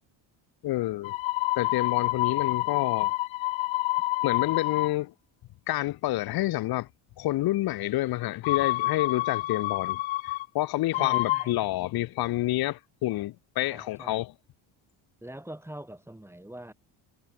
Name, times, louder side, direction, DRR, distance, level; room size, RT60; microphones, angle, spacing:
voice 1, 0.6-1.2 1.6-3.1 4.2-5.1 5.7-6.9 7.2-14.3, left 16 dB, 50° left, 0.5 m, -28 dB
sound 1, 1.0-4.9 8.4-10.5 10.9-11.5, left 18 dB, 65° left, 1.0 m, -28 dB
voice 2, 10.9-11.5 13.6-14.2 15.2-16.7, right 1 dB, 5° right, 3.4 m, -43 dB
cardioid pair, 120°, 49 cm